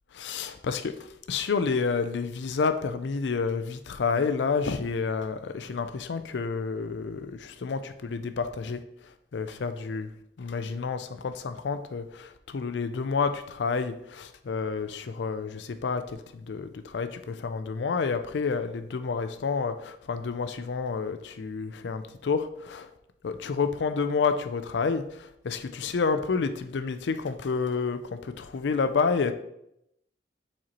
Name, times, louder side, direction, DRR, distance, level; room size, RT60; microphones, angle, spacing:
voice 1, 0.2-8.8 9.3-10.1 10.4-22.9 23.2-29.3, left 5 dB, 75° left, 10 dB, 0.4 m, -29 dB
7.4 x 4.3 x 3.0 m, 0.79 s
head